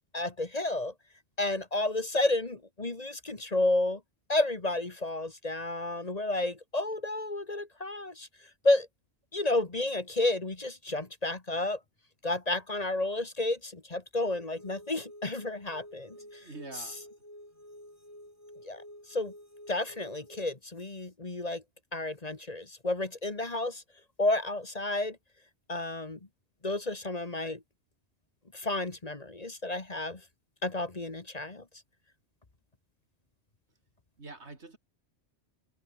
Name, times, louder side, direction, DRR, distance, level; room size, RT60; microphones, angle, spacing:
voice 1, 0.1-0.9 1.4-4.0 4.3-8.3 8.6-8.9 9.3-11.8 12.2-16.4 16.7-16.9 18.6-18.8 19.1-19.3 19.7-21.6 21.9-23.8 24.2-25.2 25.7-26.2 26.6-27.6 28.5-30.2 30.6-31.6, left 2 dB, 35° left, 1.8 m, -31 dB
sound 1, 14.2-20.4, equal, 15° left, 5.7 m, -51 dB
voice 2, 16.1-17.1 34.2-34.8, right 3 dB, 70° right, 3.3 m, -46 dB
omnidirectional pair, 1.2 m